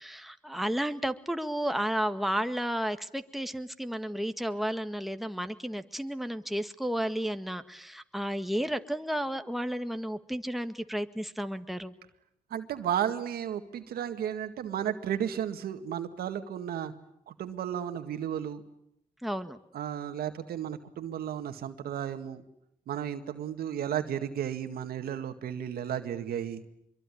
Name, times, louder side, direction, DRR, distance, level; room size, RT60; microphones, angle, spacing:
voice 1, 0.0-11.9 19.2-19.6, equal, ahead, 8 dB, 1.8 m, -32 dB
voice 2, 12.5-16.9 17.3-18.6 19.7-22.4 22.9-26.6, right 9 dB, 90° right, 8 dB, 1.9 m, -33 dB
24.5 x 23.0 x 9.9 m, 0.76 s
cardioid pair, 60°, 15 cm